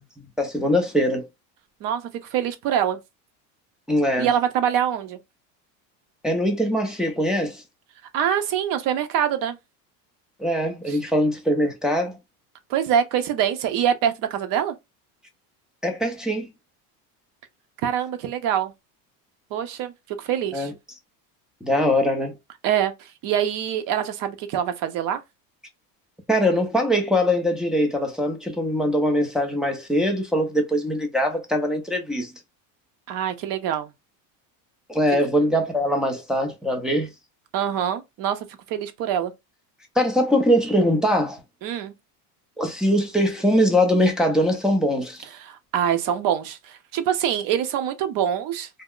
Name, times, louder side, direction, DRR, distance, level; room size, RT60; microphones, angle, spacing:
voice 1, 0.4-1.2 3.9-4.3 6.2-7.6 10.4-12.2 15.8-16.5 20.5-20.7 21.6-22.4 26.3-32.3 34.9-37.1 40.0-41.4 42.6-45.2, equal, ahead, 0.4 m, -22 dB
voice 2, 1.8-3.0 4.2-5.2 8.1-9.6 10.9-11.0 12.7-14.7 17.8-18.7 19.5-19.9 20.2-20.7 22.6-25.2 33.1-33.9 37.5-39.3 41.6-41.9 45.3-48.7, right 9 dB, 50° right, 0.7 m, -24 dB
2.4 x 2.1 x 3.6 m
supercardioid pair, 130°, 45 cm